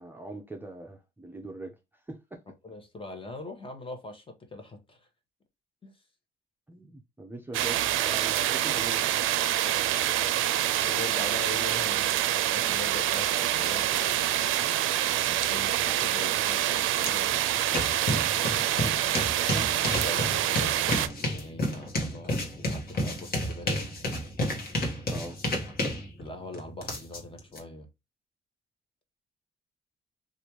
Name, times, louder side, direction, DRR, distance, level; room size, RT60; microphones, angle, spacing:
voice 1, 0.0-2.4 6.7-9.0 9.6-10.3 19.5-19.6 25.0-25.4, right 2 dB, 10° right, 0.5 m, -42 dB
voice 2, 2.6-5.1 5.8-6.0 9.6-9.8 10.8-14.7 15.2-17.4 19.6-23.9 26.2-27.9, left 2 dB, 25° left, 1.1 m, -42 dB
sound 1, 7.5-21.1, right 12 dB, 85° right, 0.4 m, -26 dB
sound 2, 17.0-17.1 17.4-27.6, left 1 dB, 50° left, 1.2 m, -31 dB
3.3 x 2.5 x 3.0 m
cardioid pair, 90°, 20 cm